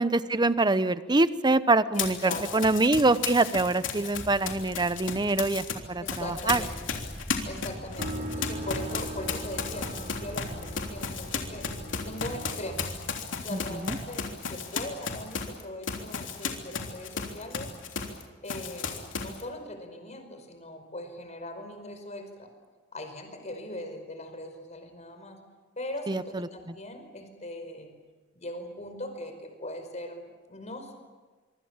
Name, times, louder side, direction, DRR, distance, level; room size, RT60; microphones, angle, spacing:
voice 1, 0.0-6.6 13.5-14.0 26.1-26.7, right 2 dB, 25° right, 14 dB, 0.9 m, -25 dB
Run, 1.9-5.7 6.1-18.2 18.5-19.4, left 5 dB, 80° left, 3.4 m, -34 dB
voice 2, 1.9-2.4 6.0-6.8 7.4-11.7 12.0-13.0 13.4-17.7 18.4-22.5 22.9-25.4 25.8-27.9 28.3-31.0, left 1 dB, 40° left, 6 dB, 5.0 m, -40 dB
sound 1, 4.1-12.2, equal, ahead, 2.4 m, -45 dB
sound 2, 8.0-13.9, right 1 dB, 50° right, 4.5 m, -39 dB
25.5 x 25.0 x 7.4 m, 1.3 s
head